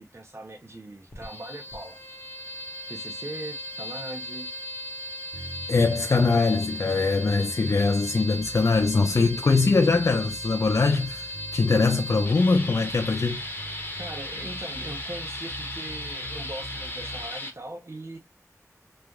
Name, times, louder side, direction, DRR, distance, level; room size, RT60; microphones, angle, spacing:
voice 1, 0.0-2.0 2.9-4.5 14.0-18.2, right 1 dB, 45° right, 0.6 m, -40 dB
sound 1, 1.1-17.5, left 1 dB, 35° left, 0.9 m, -37 dB
sound 2, 5.3-17.3, right 1 dB, 75° right, 1.1 m, -43 dB
voice 2, 5.7-13.4, left 4 dB, 60° left, 0.3 m, -22 dB
3.2 x 2.3 x 2.3 m
wide cardioid pair, 60°, 6 cm